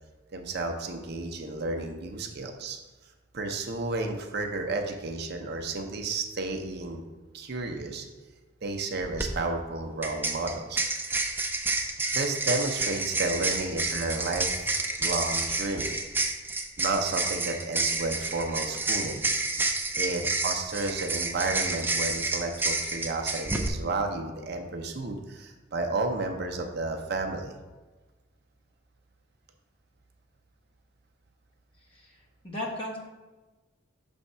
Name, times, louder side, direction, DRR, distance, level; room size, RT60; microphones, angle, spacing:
voice 1, 0.3-2.8 3.3-7.0 7.3-8.0 8.6-10.8 12.1-14.7 15.0-16.0 16.8-19.3 19.9-27.5, right 3 dB, 55° right, 4 dB, 0.6 m, -32 dB
sound 1, 9.0-9.3 10.0-23.7, right 3 dB, 10° right, 0.4 m, -29 dB
voice 2, 31.9-33.0, left 1 dB, 25° left, -3 dB, 1.2 m, -36 dB
6.4 x 3.5 x 5.4 m, 1.2 s
head